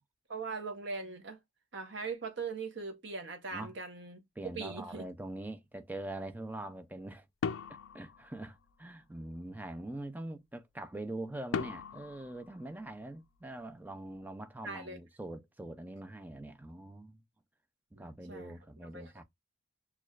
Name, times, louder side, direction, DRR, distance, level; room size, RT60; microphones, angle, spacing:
voice 1, 0.3-1.4 1.7-4.2 4.5-5.0 14.6-15.0 18.0-19.2, right 4 dB, 55° right, 0.8 m, -41 dB
voice 2, 4.4-7.3 7.9-17.2 17.9-19.2, right 1 dB, 10° right, 0.3 m, -43 dB
sound 1, 7.4-8.9 11.5-13.4, left 5 dB, 70° left, 0.4 m, -39 dB
6.3 x 2.3 x 2.3 m
head